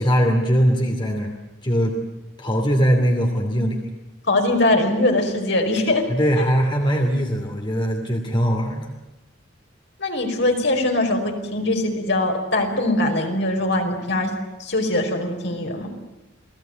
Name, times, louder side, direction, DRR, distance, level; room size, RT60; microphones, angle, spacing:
voice 1, 0.0-1.4 1.6-2.0 2.4-3.8 6.1-8.9, equal, 25° left, 2 dB, 2.7 m, -20 dB
voice 2, 4.3-6.0 6.4-6.5 10.0-14.3 14.6-15.9, left 2 dB, 60° left, 3 dB, 5.0 m, -21 dB
28.5 x 19.0 x 9.3 m, 0.99 s
head